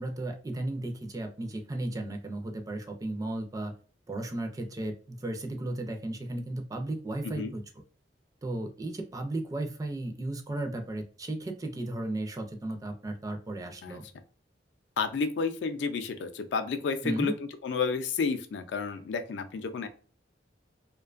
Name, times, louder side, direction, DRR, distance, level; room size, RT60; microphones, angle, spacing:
voice 1, 0.0-3.7 4.1-7.6 8.4-14.0 17.0-17.4, right 1 dB, 20° right, 4 dB, 0.4 m, -35 dB
voice 2, 15.0-19.9, left 5 dB, 75° left, 9 dB, 0.4 m, -31 dB
2.5 x 2.2 x 2.3 m, 0.39 s
head